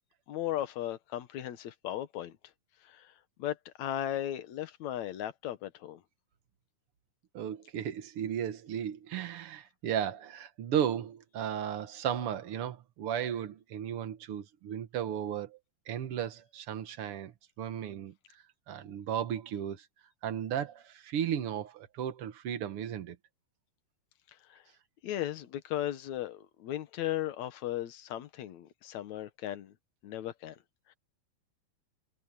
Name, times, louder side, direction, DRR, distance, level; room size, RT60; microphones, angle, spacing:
voice 1, 0.3-2.3 2.9-3.0 3.4-6.0 25.0-29.7 30.0-30.6, left 12 dB, 65° left, 2.0 m, -36 dB
voice 2, 7.3-15.6 15.9-17.3 17.6-18.1 18.7-19.9 20.2-23.2, right 9 dB, 75° right, 1.3 m, -35 dB
omnidirectional pair, 4.4 m